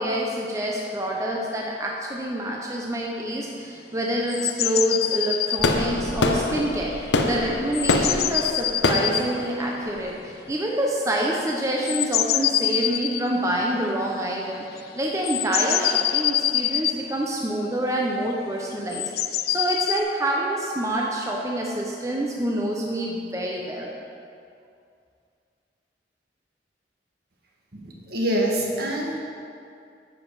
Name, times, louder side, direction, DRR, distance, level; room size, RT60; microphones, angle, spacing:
voice 1, 0.0-23.9, right 1 dB, 20° right, -2 dB, 0.8 m, -27 dB
sound 1, 4.3-5.8 6.9-7.1 7.4-7.5 7.7-9.3 11.8-13.3 14.4-14.5 14.8-14.9 15.2-17.0 18.9-20.0, left 12 dB, 60° left, 0.4 m, -25 dB
sound 2, 5.6-10.5, left 2 dB, 75° left, 0.8 m, -25 dB
voice 2, 27.7-29.2, right 1 dB, 60° right, -2 dB, 1.7 m, -25 dB
10.5 x 7.5 x 4.8 m, 2.4 s
head